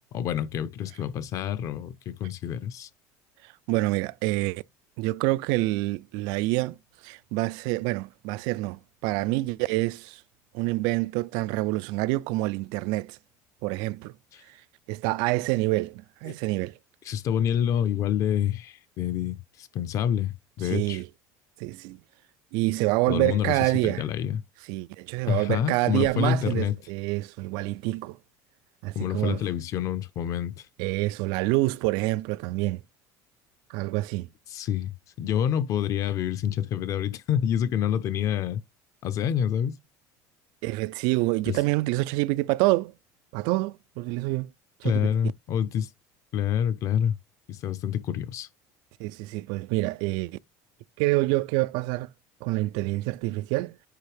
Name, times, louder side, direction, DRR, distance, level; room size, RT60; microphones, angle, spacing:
voice 1, 0.0-2.9 17.0-21.0 23.1-24.4 25.3-26.8 28.9-30.7 34.5-34.9 35.2-38.6 39.0-39.8 41.5-41.6 44.8-45.9 46.3-47.2 47.5-48.5, left 9 dB, 45° left, 0.9 m, -27 dB
voice 2, 3.4-4.6 5.0-6.8 7.0-10.2 10.5-13.2 13.6-14.1 14.9-16.8 20.6-21.1 21.6-22.0 22.5-24.0 24.7-28.2 28.8-29.4 30.8-32.8 33.7-34.3 40.6-42.9 43.3-44.5 44.8-45.1 49.0-50.4 51.0-52.1 52.4-53.7, right 20 dB, 70° right, 0.4 m, -27 dB
9.7 x 3.4 x 3.4 m
cardioid pair, 150°, 8 cm